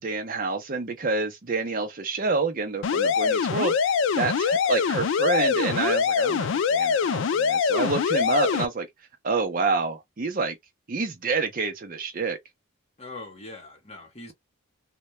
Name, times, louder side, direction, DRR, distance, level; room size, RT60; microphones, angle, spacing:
voice 1, 0.0-3.8 4.2-8.9 9.2-10.6 10.9-12.4, right 3 dB, 40° right, 0.5 m, -28 dB
sound 1, 2.8-8.7, left 6 dB, 60° left, 0.3 m, -23 dB
voice 2, 13.0-14.3, left 2 dB, 30° left, 0.8 m, -41 dB
2.2 x 2.1 x 2.9 m
head